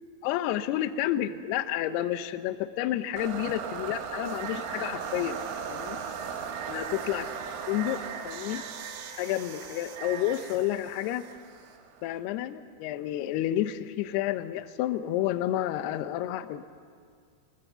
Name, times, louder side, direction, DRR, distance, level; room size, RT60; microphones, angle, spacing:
voice 1, 0.2-5.4 5.7-6.0 6.7-7.3 7.7-8.0 8.2-8.6 9.2-11.3 12.0-16.6, left 13 dB, 80° left, 11 dB, 2.4 m, -30 dB
sound 1, 3.2-12.2, right 7 dB, 75° right, 4.0 m, -37 dB
25.0 x 21.5 x 8.1 m, 2.1 s
omnidirectional pair, 5.7 m